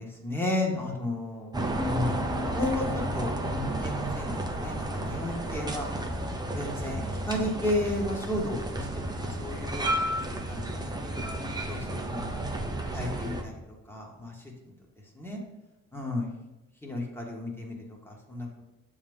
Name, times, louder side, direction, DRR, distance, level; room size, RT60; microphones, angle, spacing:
voice 1, 0.0-2.3 2.5-2.9 3.1-5.9 6.5-8.9 9.2-10.2 10.5-10.7 11.0-11.8 12.1-12.3 12.9-13.5 13.9-14.3 15.2-15.4 15.9-16.3 16.8-17.8 18.1-18.6, left 1 dB, 10° left, -1 dB, 1.8 m, -33 dB
sound 1, 1.5-13.4, right 1 dB, 15° right, 0.9 m, -32 dB
7.1 x 3.7 x 5.5 m, 1.0 s
cardioid pair, 90°, 30 cm